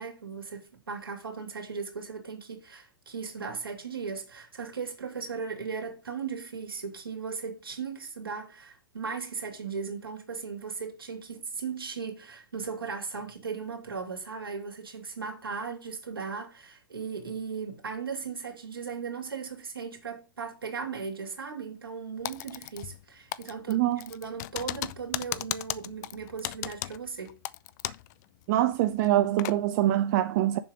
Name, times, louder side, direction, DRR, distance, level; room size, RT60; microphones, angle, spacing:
voice 1, 0.0-27.4, right 5 dB, 85° right, 2.7 m, -37 dB
Typing, 22.2-23.0 23.3-28.1 28.4-28.5 29.0-29.6, left 16 dB, 50° left, 0.6 m, -36 dB
voice 2, 23.7-24.0 28.5-30.6, right 13 dB, 50° right, 0.7 m, -24 dB
7.1 x 5.8 x 6.4 m
figure-of-eight pair, 100°, 12 cm